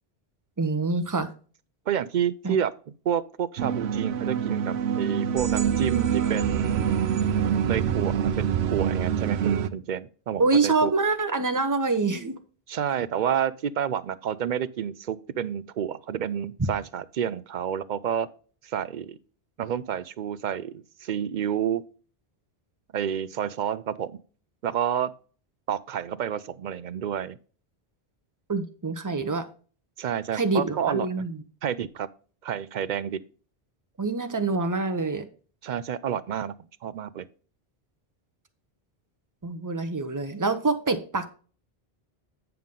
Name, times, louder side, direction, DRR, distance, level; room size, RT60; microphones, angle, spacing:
voice 1, 0.6-1.3 2.4-2.6 10.4-12.4 28.5-29.5 30.3-31.4 34.0-35.2 39.4-41.3, right 3 dB, 20° right, 0.8 m, -25 dB
voice 2, 1.9-2.7 3.1-6.8 7.7-10.9 12.7-18.3 18.6-19.2 19.6-21.8 22.9-24.2 24.6-25.1 25.7-27.4 30.0-31.2 31.6-32.1 32.4-33.2 35.6-36.5 36.8-37.3, right 9 dB, 55° right, 0.6 m, -29 dB
sound 1, 3.6-9.7, right 8 dB, 85° right, 0.9 m, -25 dB
9.2 x 5.8 x 3.7 m
omnidirectional pair, 1.1 m